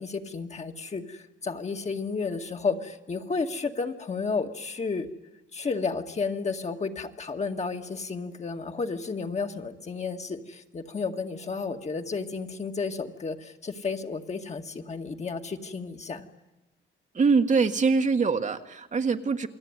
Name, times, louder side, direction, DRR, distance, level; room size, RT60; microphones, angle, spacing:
voice 1, 0.0-5.1 5.5-16.3, left 4 dB, 35° left, 4 dB, 2.1 m, -32 dB
voice 2, 17.1-19.5, right 4 dB, 40° right, 6 dB, 1.6 m, -23 dB
28.0 x 20.5 x 9.8 m, 1.0 s
cardioid pair, 90°, 20 cm